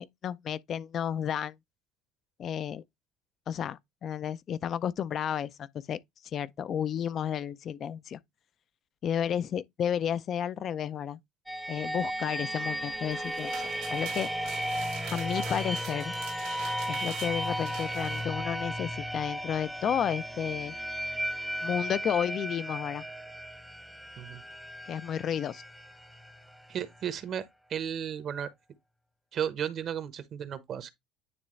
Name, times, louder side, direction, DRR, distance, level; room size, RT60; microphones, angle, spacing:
voice 1, 0.0-1.5 2.4-2.8 3.5-6.0 6.3-8.2 9.0-11.2 11.7-13.5 13.9-14.3 15.1-16.1 16.9-20.7 21.6-23.0 24.9-25.6, left 9 dB, 50° left, 0.5 m, -32 dB
sound 1, 11.5-27.1, equal, ahead, 0.7 m, -35 dB
sound 2, 12.9-18.3, right 11 dB, 75° right, 1.5 m, -45 dB
voice 2, 26.7-27.4 27.7-28.5 29.3-30.9, right 9 dB, 50° right, 1.0 m, -34 dB
9.6 x 3.2 x 3.2 m
supercardioid pair, 85°, 0 cm